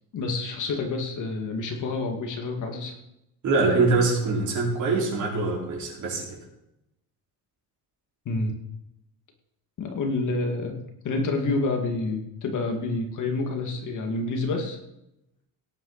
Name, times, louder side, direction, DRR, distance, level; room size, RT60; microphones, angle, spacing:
voice 1, 0.1-2.9 8.3-8.5 9.8-10.8 11.0-14.8, left 3 dB, 50° left, 3 dB, 2.3 m, -28 dB
voice 2, 3.4-6.4, right 3 dB, 45° right, -3 dB, 4.9 m, -24 dB
18.0 x 9.0 x 4.2 m, 0.84 s
cardioid pair, 175°, 39 cm